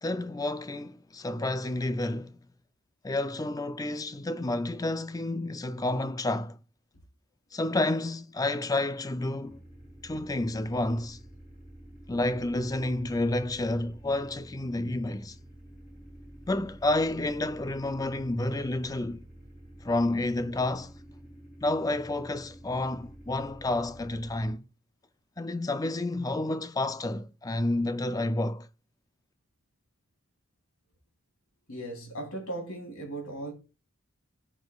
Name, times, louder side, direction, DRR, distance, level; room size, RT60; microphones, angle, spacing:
voice 1, 0.0-2.4 3.0-6.6 7.5-9.6 10.0-11.2 12.1-15.4 16.5-19.2 19.8-20.9 21.6-24.6 25.4-28.7, left 2 dB, 15° left, 0.4 m, -30 dB
sound 1, 9.4-24.5, right 1 dB, 35° left, 6.0 m, -50 dB
voice 2, 31.7-33.5, right 2 dB, 90° left, 3.4 m, -37 dB
18.5 x 6.2 x 2.4 m
head